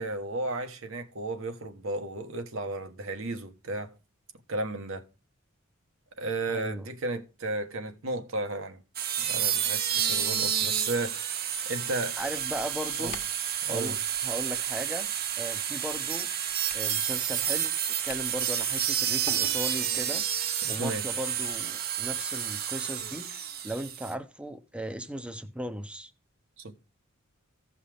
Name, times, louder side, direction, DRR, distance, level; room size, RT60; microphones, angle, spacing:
voice 1, 0.0-3.9 4.5-5.0 6.2-8.8 9.3-11.3 11.7-12.2 13.0-13.1 13.6-13.9 20.6-21.0 26.6-26.7, right 2 dB, 75° right, 1.2 m, -34 dB
voice 2, 6.5-6.9 12.2-13.2 13.7-14.0 14.2-15.1 15.4-16.3 16.7-17.7 18.0-20.2 20.7-26.1, equal, 5° right, 0.7 m, -37 dB
sound 1, 8.9-24.1, right 9 dB, 50° right, 0.8 m, -30 dB
sound 2, 12.1-20.2, left 4 dB, 45° left, 1.3 m, -51 dB
15.5 x 5.6 x 3.4 m
head